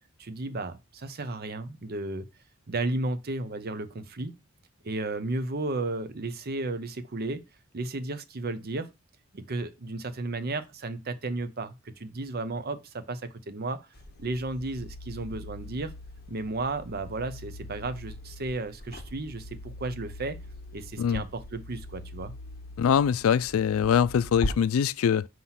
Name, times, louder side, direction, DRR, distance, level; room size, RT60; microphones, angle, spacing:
voice 1, 0.2-2.3 2.7-4.3 4.8-7.4 7.7-8.9 9.3-13.8 14.2-15.9 16.3-20.4 20.7-22.3, right 2 dB, 50° right, 0.7 m, -33 dB
sound 1, 13.9-24.5, left 1 dB, 50° left, 1.2 m, -41 dB
voice 2, 22.8-25.3, left 7 dB, 90° left, 0.3 m, -23 dB
5.6 x 3.0 x 5.6 m
head